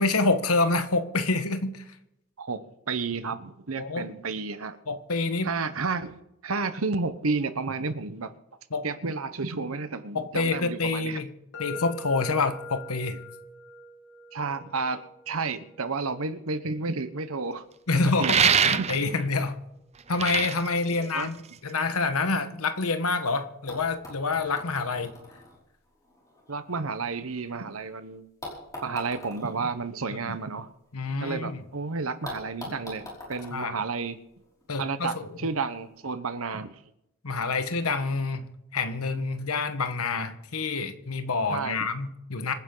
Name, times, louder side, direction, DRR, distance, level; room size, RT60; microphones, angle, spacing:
voice 1, 0.0-1.8 3.8-4.1 4.9-5.5 8.7-8.9 10.1-11.3 11.6-13.2 17.9-19.6 20.1-25.1 30.2-30.3 30.9-31.6 33.5-33.7 34.7-35.4 37.2-42.5, left 3 dB, 85° left, 9 dB, 1.3 m, -27 dB
voice 2, 2.4-4.8 5.4-8.3 8.8-11.2 14.3-17.6 18.2-18.4 18.8-18.9 20.9-21.3 26.5-28.3 28.8-30.7 31.2-34.2 34.8-36.8 41.5-41.9, right 4 dB, 70° right, 11 dB, 1.0 m, -31 dB
sound 1, 11.5-19.4, left 2 dB, 55° left, 2.6 m, -45 dB
sound 2, 18.2-19.2 20.0-21.7, right 7 dB, 30° right, 0.6 m, -24 dB
sound 3, 23.2-23.3 23.7-27.8 28.4-31.4 31.6-31.7 32.2-34.6 35.6-35.7, left 1 dB, 15° left, 5.4 m, -44 dB
26.0 x 10.0 x 3.9 m, 0.85 s
head